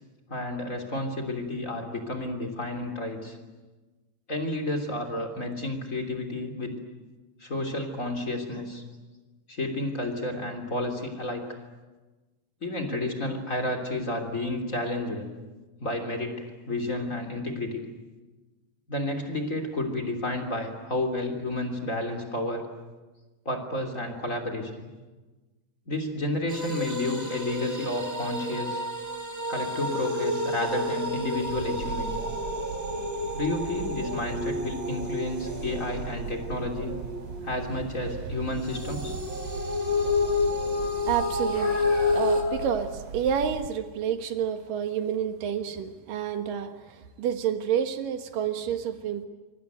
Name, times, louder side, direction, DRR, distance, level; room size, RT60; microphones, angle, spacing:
voice 1, 0.3-3.4 4.3-6.8 7.4-8.8 9.5-11.4 12.6-15.3 15.8-17.8 18.9-22.7 23.4-24.9 25.9-28.8 29.5-32.2 33.3-37.0 37.4-39.1, left 1 dB, 25° left, 6 dB, 3.1 m, -31 dB
sound 1, 26.5-38.0 38.6-42.4, left 2 dB, 10° right, 3.7 m, -30 dB
sound 2, 30.9-43.1, left 4 dB, 90° left, 6.7 m, -46 dB
sound 3, 31.4-43.7, right 6 dB, 65° right, 1.9 m, -39 dB
voice 2, 41.0-49.3, right 8 dB, 85° right, 8 dB, 3.2 m, -29 dB
26.5 x 24.0 x 9.3 m, 1.3 s
omnidirectional pair, 3.8 m